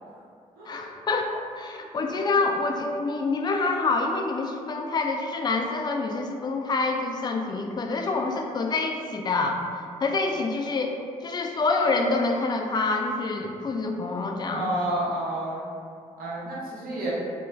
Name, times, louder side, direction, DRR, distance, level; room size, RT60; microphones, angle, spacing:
voice 1, 0.7-9.6 10.0-11.0 11.2-14.7, left 3 dB, 30° left, 2 dB, 0.3 m, -26 dB
voice 2, 14.5-15.6 16.2-17.1, right 1 dB, 70° right, -7 dB, 0.8 m, -30 dB
2.3 x 2.3 x 3.2 m, 2.2 s
supercardioid pair, 55°, 15 cm